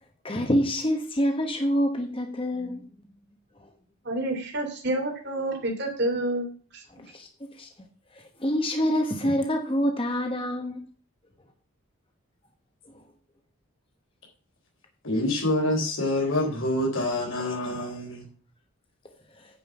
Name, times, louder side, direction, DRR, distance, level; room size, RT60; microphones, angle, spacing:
voice 1, 0.2-2.8 6.9-7.7 8.2-10.8, equal, 25° left, 1.2 m, -26 dB
voice 2, 4.0-6.5 6.7-6.8, right 1 dB, 55° right, 2.8 m, -28 dB
voice 3, 15.0-18.2, left 1 dB, 70° left, 3.8 m, -26 dB
9.4 x 5.4 x 7.0 m
head